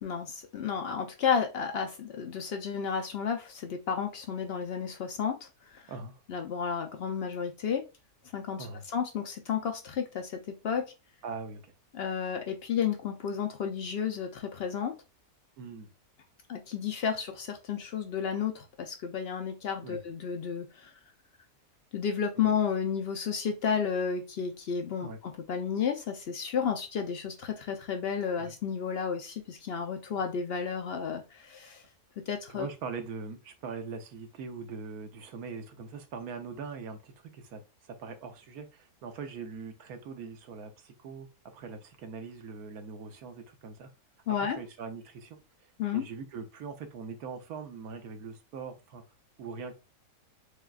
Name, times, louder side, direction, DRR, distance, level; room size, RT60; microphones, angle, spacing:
voice 1, 0.0-5.8 6.3-7.8 8.3-10.9 11.9-14.9 16.5-20.9 21.9-31.8 32.3-32.7 44.3-44.6 45.8-46.0, left 7 dB, 70° left, 5 dB, 0.6 m, -32 dB
voice 2, 5.9-6.2 8.6-8.8 11.2-11.7 15.6-15.9 19.8-20.0 22.4-22.5 25.0-25.2 28.4-28.5 32.5-41.3 41.5-43.9 44.3-49.0 49.4-49.7, right 5 dB, 75° right, 6 dB, 1.2 m, -42 dB
6.4 x 2.3 x 2.3 m, 0.29 s
omnidirectional pair, 1.6 m